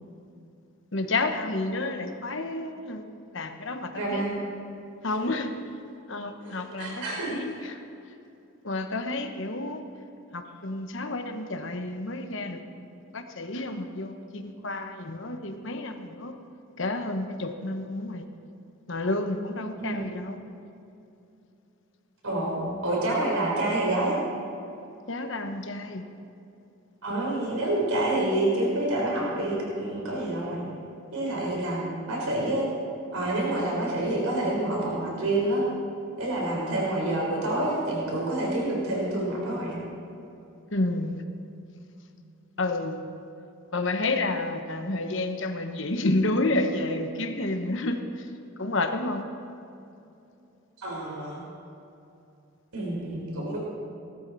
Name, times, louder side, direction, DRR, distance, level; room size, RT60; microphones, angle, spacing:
voice 1, 0.9-3.1 3.3-4.2 5.0-5.5 6.1-7.8 8.6-9.8 10.3-12.6 13.1-16.4 16.8-18.3 18.9-20.4 25.1-26.0 40.7-41.2 42.6-43.0 43.7-48.0 48.6-49.2, left 2 dB, 60° left, 6 dB, 1.1 m, -30 dB
voice 2, 3.9-4.4 6.4-7.3 19.8-20.2 22.2-24.2 27.0-30.6 31.1-32.7 33.1-35.6 36.2-39.8 50.8-51.4 52.7-53.6, right 1 dB, 85° right, -3 dB, 4.0 m, -28 dB
19.0 x 13.0 x 4.1 m, 2.7 s
head